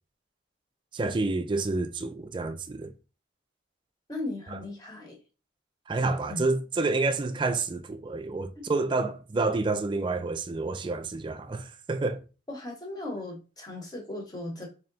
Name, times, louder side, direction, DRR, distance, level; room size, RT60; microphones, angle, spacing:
voice 1, 0.9-2.9 5.9-12.2, right 3 dB, 25° right, 0.3 m, -29 dB
voice 2, 4.1-5.2 6.3-6.4 8.5-8.6 12.5-14.7, left 2 dB, 20° left, 1.0 m, -37 dB
3.3 x 2.7 x 3.9 m
head